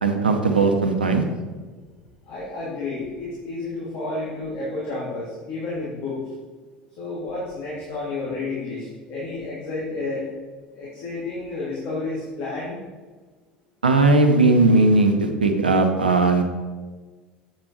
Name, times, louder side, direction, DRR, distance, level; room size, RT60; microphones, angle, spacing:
voice 1, 0.0-1.2 13.8-16.4, right 3 dB, 85° right, 5 dB, 0.9 m, -18 dB
voice 2, 2.3-6.2 7.0-10.3 10.7-12.8, left 2 dB, 55° left, -7 dB, 2.6 m, -31 dB
8.4 x 7.9 x 3.1 m, 1.4 s
figure-of-eight pair, 65°, 5 cm